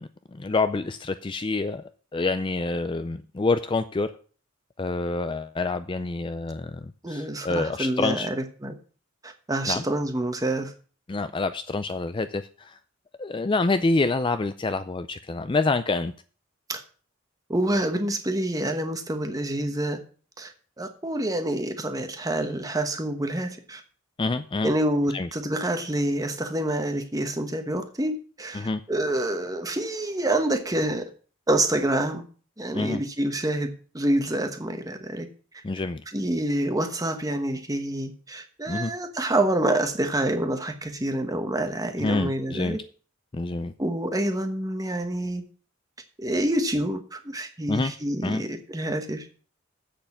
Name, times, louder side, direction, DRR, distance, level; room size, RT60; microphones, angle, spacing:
voice 1, 0.0-4.1 4.8-8.3 9.7-9.8 11.1-12.8 13.2-16.1 24.2-24.7 25.1-25.3 28.5-28.8 32.7-33.0 35.6-36.0 38.7-38.9 42.0-42.8 43.3-43.7 47.7-47.9 48.2-48.4, left 3 dB, 25° left, 0.4 m, -27 dB
voice 2, 7.0-8.7 9.2-10.7 16.7-16.8 17.5-20.0 20.4-23.8 24.6-31.0 31.5-32.2 32.6-35.3 36.1-42.8 43.8-45.4 46.2-49.3, right 1 dB, 15° right, 1.1 m, -27 dB
7.9 x 6.7 x 7.0 m
head